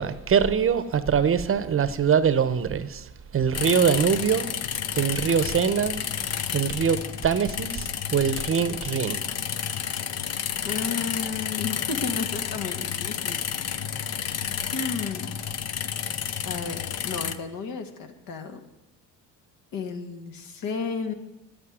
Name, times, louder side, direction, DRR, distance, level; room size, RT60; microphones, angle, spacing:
voice 1, 0.0-4.6 4.9-6.0 6.5-9.2, right 7 dB, 35° right, 0.9 m, -23 dB
sound 1, 3.5-17.4, left 8 dB, 45° left, 0.9 m, -31 dB
voice 2, 10.6-14.1 14.7-15.3 16.4-18.6 19.7-21.1, left 5 dB, 65° left, 2.0 m, -33 dB
10.5 x 8.8 x 9.4 m
supercardioid pair, 90°, 36 cm